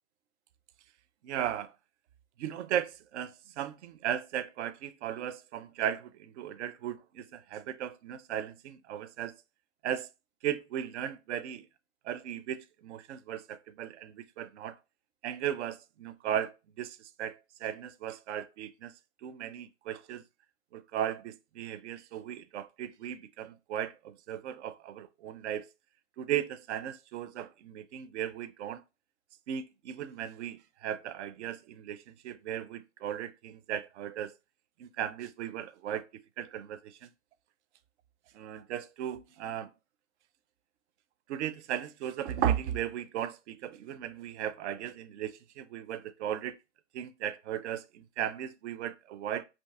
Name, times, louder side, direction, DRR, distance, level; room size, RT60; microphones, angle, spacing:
voice 1, 1.2-1.7 2.4-9.3 9.8-10.1 10.4-11.6 12.0-14.8 15.2-18.9 19.2-20.2 20.7-25.7 26.2-28.8 29.5-34.3 34.8-37.1 38.3-39.7 41.3-46.6 46.9-49.4, right 10 dB, 65° right, 0.5 m, -36 dB
5.1 x 2.8 x 2.3 m
hypercardioid pair, 120°, 37 cm